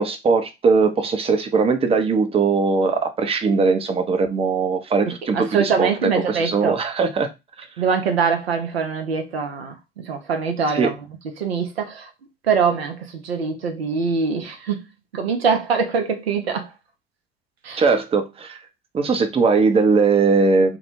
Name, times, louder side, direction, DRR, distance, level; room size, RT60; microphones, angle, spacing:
voice 1, 0.0-5.9 6.3-7.3 10.7-10.9 17.8-18.6 18.9-20.8, right 4 dB, 20° right, 0.5 m, -20 dB
voice 2, 5.3-6.8 7.8-11.0 11.4-12.1 12.5-14.8 15.1-16.7 17.6-17.8, right 5 dB, 85° right, 0.5 m, -23 dB
2.2 x 2.0 x 2.9 m
figure-of-eight pair, 70°, 30 cm